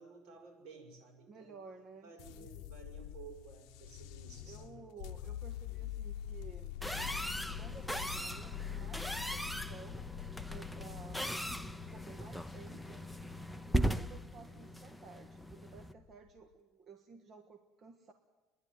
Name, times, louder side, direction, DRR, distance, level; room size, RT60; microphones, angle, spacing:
voice 1, 0.0-1.5 2.0-4.8 14.4-14.8, right 5 dB, 75° right, 1 dB, 6.1 m, -54 dB
voice 2, 1.3-2.7 4.5-6.8 7.6-10.1 10.5-13.0 13.6-18.1, right 5 dB, 40° right, 4 dB, 1.5 m, -55 dB
sound 1, 2.2-16.4, left 12 dB, 85° left, 0.6 m, -46 dB
sound 2, 6.8-15.9, equal, ahead, 0.6 m, -39 dB
29.5 x 11.0 x 9.6 m, 1.3 s
cardioid pair, 135°, 0 cm